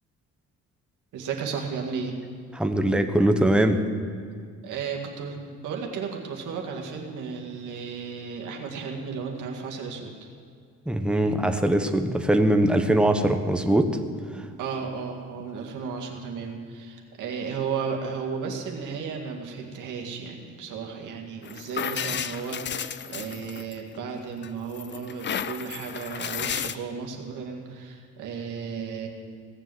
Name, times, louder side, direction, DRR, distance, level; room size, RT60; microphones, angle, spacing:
voice 1, 1.1-2.2 4.6-10.3 14.6-29.1, right 5 dB, 85° right, 1 dB, 2.1 m, -34 dB
voice 2, 2.5-3.8 10.9-13.9, right 1 dB, 5° right, 6 dB, 1.0 m, -21 dB
sound 1, 21.4-24.0 24.4-26.8, left 8 dB, 40° left, 0.5 m, -33 dB
17.5 x 7.2 x 7.9 m, 2.2 s
cardioid pair, 90°, 30 cm